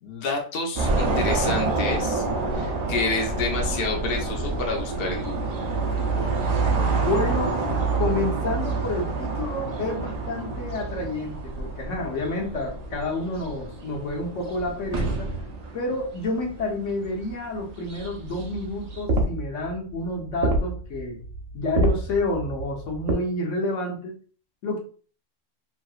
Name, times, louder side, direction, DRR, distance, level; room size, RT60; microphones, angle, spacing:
voice 1, 0.0-2.2 2.5-5.5, left 3 dB, 55° left, 1 dB, 0.7 m, -29 dB
sound 1, 0.8-19.0, right 3 dB, 55° right, 0.4 m, -28 dB
voice 2, 7.0-7.7 8.0-15.3 15.7-21.2 21.5-24.1 24.6-24.8, left 2 dB, 70° left, 0 dB, 1.2 m, -29 dB
sound 2, 18.0-23.1, right 2 dB, 85° right, 1.1 m, -27 dB
3.1 x 2.7 x 2.4 m, 0.40 s
omnidirectional pair, 1.3 m